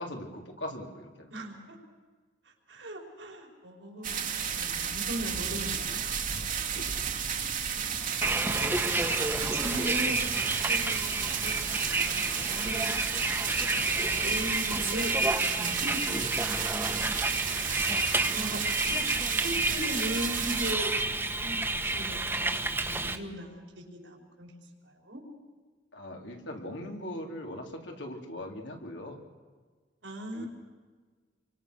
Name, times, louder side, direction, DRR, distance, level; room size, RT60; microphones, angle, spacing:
voice 1, 0.0-1.3 6.6-6.9 17.2-17.6 18.8-19.0 25.9-29.2 30.3-30.5, left 1 dB, 75° left, 2 dB, 4.0 m, -40 dB
voice 2, 1.3-1.8 2.4-6.0 7.9-8.1 8.4-9.1 9.4-12.9 13.4-17.1 18.3-24.6 24.8-25.2 30.0-30.5, right 1 dB, 85° right, 0 dB, 5.1 m, -39 dB
sound 1, 4.0-20.7, right 8 dB, 45° right, 1.9 m, -33 dB
Bus, 8.2-23.2, right 2 dB, 10° right, 1.5 m, -30 dB
29.5 x 24.5 x 6.5 m, 1.4 s
head